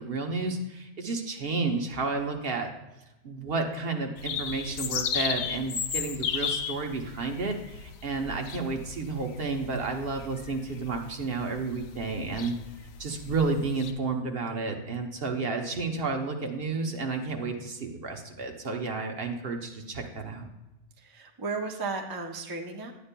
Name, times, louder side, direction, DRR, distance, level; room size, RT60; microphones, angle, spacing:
voice 1, 0.0-2.7 3.2-12.5 13.0-20.5, right 3 dB, 55° right, 3 dB, 1.0 m, -31 dB
sound 1, 4.2-13.9, left 7 dB, 70° left, 0.8 m, -35 dB
voice 2, 21.0-22.9, right 4 dB, 25° right, 2 dB, 0.5 m, -34 dB
11.0 x 8.4 x 2.2 m, 0.97 s
omnidirectional pair, 1.2 m